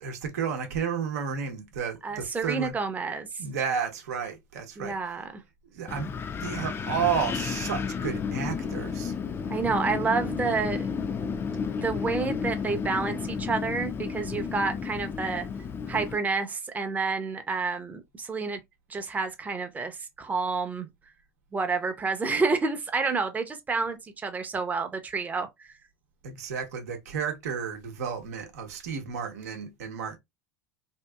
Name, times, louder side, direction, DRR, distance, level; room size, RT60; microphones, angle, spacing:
voice 1, 0.0-2.7 3.4-5.0 5.7-6.1 6.4-9.1 26.2-30.2, right 7 dB, 80° right, 0.8 m, -32 dB
voice 2, 2.0-3.3 4.8-5.4 9.5-10.9 11.8-15.5 15.9-18.6 18.9-20.9 21.5-25.7, right 4 dB, 20° right, 0.6 m, -29 dB
Wind, 5.9-16.2, left 6 dB, 30° left, 0.4 m, -32 dB
2.8 x 2.7 x 2.2 m
hypercardioid pair, 90°, 8 cm